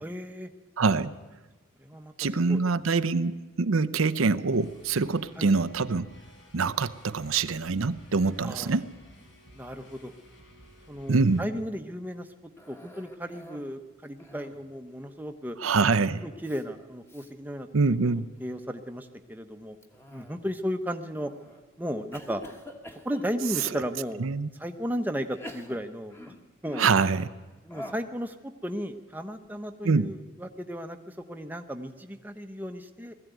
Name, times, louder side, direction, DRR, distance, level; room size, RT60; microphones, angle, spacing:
voice 1, 0.0-0.5 1.8-2.1 2.5-2.6 5.4-5.5 8.4-8.8 9.5-10.1 10.9-12.3 12.7-15.6 16.2-17.7 18.4-19.8 20.1-21.3 21.8-22.4 23.0-24.3 24.6-26.3 26.6-26.9 27.6-33.1, equal, 10° right, 6 dB, 0.9 m, -35 dB
voice 2, 0.8-1.1 2.2-6.1 6.5-8.9 11.1-11.4 15.6-16.2 17.7-18.3 24.2-24.5 26.8-27.3 29.8-30.1, right 4 dB, 85° right, 12 dB, 0.7 m, -25 dB
sound 1, 4.5-11.4, equal, 65° left, 4.2 m, -54 dB
Cough, 12.6-13.8 14.1-14.7 15.8-16.1 16.4-16.6 17.1-17.3 17.9-18.3 19.8-20.6 21.2-21.6 22.1-23.9 24.5-24.6 25.3-27.1 27.7-28.1, left 1 dB, 10° left, 1.5 m, -46 dB
20.0 x 14.5 x 9.2 m, 1.2 s
head